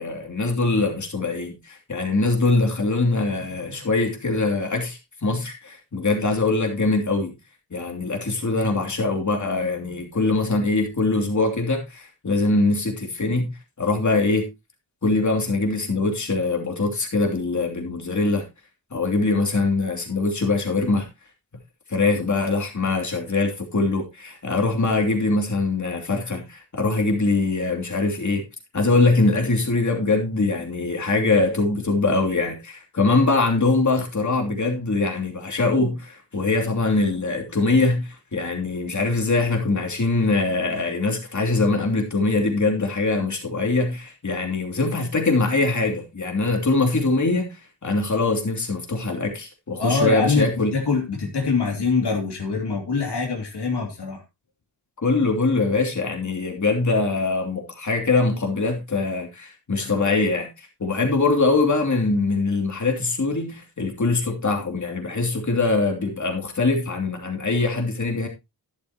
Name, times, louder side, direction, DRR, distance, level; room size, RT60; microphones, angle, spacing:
voice 1, 0.0-7.3 7.7-13.5 13.8-14.5 15.0-18.4 18.9-21.1 21.9-28.4 28.7-50.7 55.0-68.3, left 3 dB, 45° left, 3.0 m, -23 dB
voice 2, 49.8-54.2, left 4 dB, 80° left, 2.8 m, -24 dB
12.0 x 11.5 x 2.9 m
wide cardioid pair, 115°, 40 cm